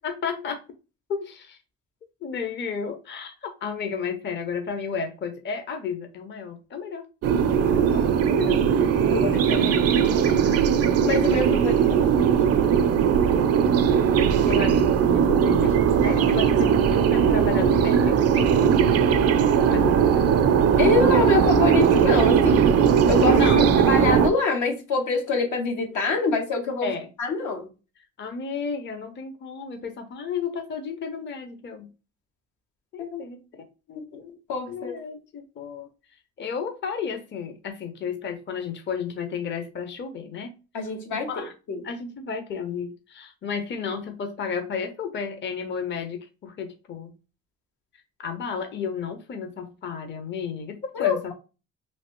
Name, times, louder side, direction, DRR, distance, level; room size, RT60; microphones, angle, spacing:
voice 1, 0.0-0.6 1.1-1.6 2.2-7.0 7.6-8.6 9.3-10.7 13.3-13.6 14.5-19.2 19.7-21.0 23.3-23.8 26.8-27.1 28.2-31.9 32.9-34.4 34.7-35.9 36.4-40.5 41.1-41.5 41.8-47.1 48.2-51.3, left 6 dB, 40° left, 0.6 m, -33 dB
sound 1, 7.2-24.3, right 7 dB, 55° right, 0.4 m, -19 dB
voice 2, 9.1-9.6 11.0-12.3 14.3-14.6 20.8-22.7 23.1-23.5 23.8-26.9 27.2-27.7 33.0-33.2 34.5-35.0 40.7-41.8 50.9-51.3, left 4 dB, 80° left, 1.0 m, -25 dB
3.2 x 2.7 x 2.9 m
cardioid pair, 90°, 30 cm